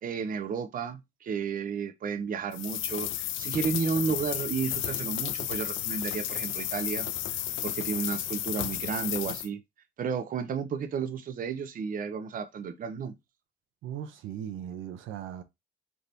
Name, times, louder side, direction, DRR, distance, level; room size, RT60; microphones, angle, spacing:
voice 1, 0.0-9.6 10.0-13.2, right 6 dB, 45° right, 0.6 m, -32 dB
sound 1, 2.5-9.5, left 12 dB, 80° left, 0.5 m, -33 dB
voice 2, 13.8-15.4, right 10 dB, 80° right, 0.7 m, -38 dB
3.5 x 2.8 x 3.9 m
cardioid pair, 90°, 20 cm